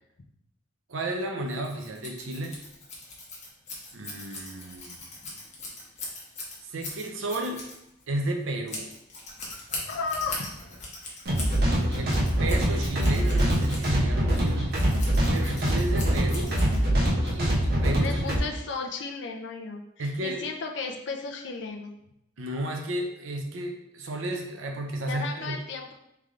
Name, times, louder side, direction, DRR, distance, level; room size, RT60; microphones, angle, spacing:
voice 1, 0.9-2.6 3.9-5.0 6.6-7.6 8.1-8.9 11.9-14.7 15.3-16.6 17.3-18.4 20.0-20.4 22.4-25.6, right 1 dB, 80° right, 2 dB, 0.7 m, -32 dB
Scissors, 1.5-17.1, left 2 dB, 35° left, 1.1 m, -41 dB
voice 2, 9.9-10.5 11.8-12.2 18.0-21.9 25.1-25.9, left 4 dB, 60° left, 3 dB, 0.6 m, -34 dB
sound 1, 11.3-18.4, equal, 50° right, 1.0 m, -24 dB
3.4 x 3.3 x 3.7 m, 0.81 s
head